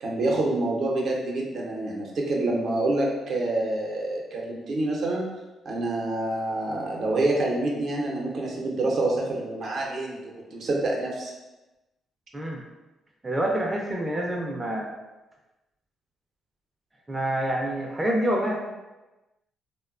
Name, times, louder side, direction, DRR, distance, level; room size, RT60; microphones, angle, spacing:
voice 1, 0.0-5.3 5.6-11.3, right 2 dB, 60° right, -2 dB, 0.6 m, -27 dB
voice 2, 13.2-14.9 17.1-18.6, right 1 dB, 15° right, -2 dB, 0.4 m, -27 dB
2.9 x 2.1 x 2.3 m, 1.1 s
cardioid pair, 90°, 0 cm